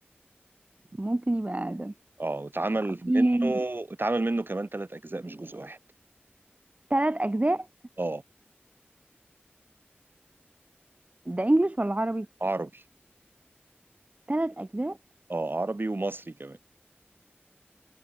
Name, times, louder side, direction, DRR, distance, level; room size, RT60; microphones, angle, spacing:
voice 1, 1.0-1.9 3.1-3.5 6.9-7.7 11.3-12.3 14.3-15.0, right 1 dB, 35° right, 2.0 m, -26 dB
voice 2, 2.2-5.8 8.0-8.2 12.4-12.8 15.3-16.6, right 2 dB, 55° right, 7.8 m, -31 dB
wide cardioid pair, 50°, 4 cm